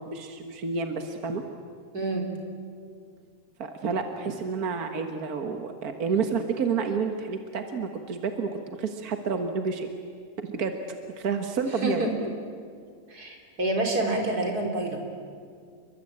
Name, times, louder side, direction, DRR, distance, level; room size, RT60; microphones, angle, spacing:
voice 1, 0.1-1.4 3.6-9.9 10.5-10.7 11.2-12.1, right 5 dB, 45° right, 5 dB, 1.2 m, -29 dB
voice 2, 1.9-2.3 11.8-12.2 13.1-15.0, right 2 dB, 30° right, 2 dB, 4.1 m, -27 dB
29.0 x 23.0 x 8.8 m, 2.2 s
omnidirectional pair, 3.6 m